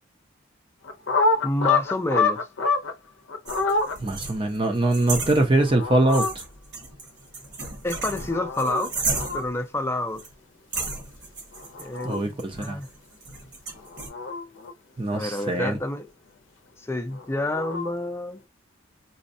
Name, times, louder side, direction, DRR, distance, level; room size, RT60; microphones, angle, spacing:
sound 1, 0.8-2.9 3.3-4.0 5.6-6.3 8.0-8.9 9.2-9.4 11.5-12.2 13.8-14.7 17.1-17.9, left 3 dB, 75° left, 0.6 m, -26 dB
voice 1, 1.4-2.5 7.8-8.9 9.3-10.2 11.8-12.9 15.1-16.1 16.9-18.4, left 1 dB, 15° left, 0.5 m, -28 dB
sound 2, 3.5-5.8 6.1-9.6 10.2-10.3 10.7-14.1, right 3 dB, 55° right, 1.3 m, -34 dB
voice 2, 4.0-6.2 12.0-12.8 15.0-15.7, right 2 dB, 25° right, 0.6 m, -22 dB
4.0 x 2.2 x 2.6 m
head